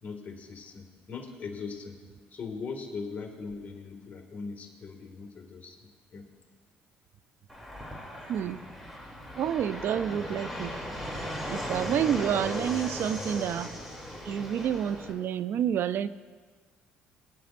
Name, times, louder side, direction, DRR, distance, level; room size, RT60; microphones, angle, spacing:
voice 1, 0.0-2.0 2.3-6.3, left 4 dB, 45° left, 2 dB, 2.1 m, -40 dB
Fixed-wing aircraft airplane, 7.5-15.1, equal, ahead, 2.9 m, -37 dB
voice 2, 8.3-8.6 9.4-10.7 11.5-13.7 14.3-16.1, right 9 dB, 60° right, 15 dB, 0.4 m, -29 dB
19.5 x 10.0 x 2.6 m, 1.5 s
supercardioid pair, 80°, 4 cm